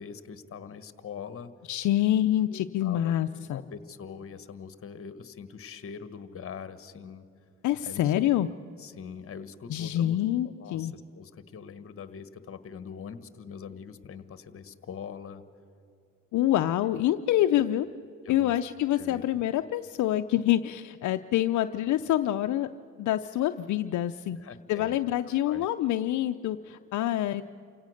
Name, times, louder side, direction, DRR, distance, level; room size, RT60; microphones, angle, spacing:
voice 1, 0.0-1.5 2.5-3.1 3.5-7.3 7.8-8.1 8.8-10.2 10.4-15.4 18.2-18.6 19.0-19.4 24.4-25.0 25.4-25.7, left 7 dB, 45° left, 12 dB, 1.4 m, -43 dB
voice 2, 1.7-3.6 7.6-8.5 9.7-10.9 16.3-17.9 18.3-22.7 23.0-24.4 24.7-27.4, left 12 dB, 75° left, 8 dB, 0.6 m, -26 dB
28.5 x 17.0 x 6.5 m, 2.5 s
cardioid pair, 90°, 30 cm